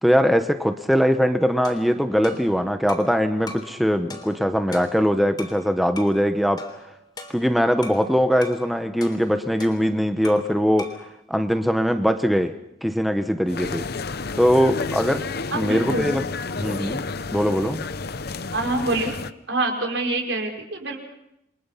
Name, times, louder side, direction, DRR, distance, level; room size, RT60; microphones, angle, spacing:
voice 1, 0.0-6.6 7.3-10.9 11.3-12.5 12.8-13.9 14.4-15.3 15.5-16.2 16.6-17.0 17.3-17.8, equal, ahead, 7 dB, 0.9 m, -21 dB
sound 1, 1.6-3.2 3.5-3.8 4.1-5.6 6.0-6.2 6.6-8.1 8.4-8.7 9.0-10.5 10.8-11.1, left 2 dB, 20° left, 3.4 m, -40 dB
sound 2, 13.5-19.3, left 3 dB, 55° left, 0.9 m, -30 dB
voice 2, 15.5-16.1 18.5-19.1 19.5-21.0, right 2 dB, 70° right, 3 dB, 4.9 m, -26 dB
28.5 x 23.5 x 5.7 m, 0.83 s
head